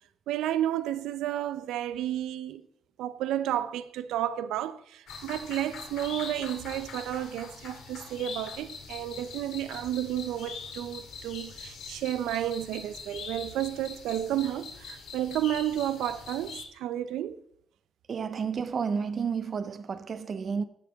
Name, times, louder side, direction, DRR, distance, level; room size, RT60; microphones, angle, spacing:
voice 1, 0.3-2.6 3.0-17.4, right 12 dB, 90° right, 0.6 m, -32 dB
sound 1, 5.1-16.6, left 5 dB, 75° left, 2.3 m, -43 dB
voice 2, 18.1-20.6, right 6 dB, 45° right, 0.8 m, -31 dB
15.5 x 6.7 x 3.6 m
cardioid pair, 90°, 0 cm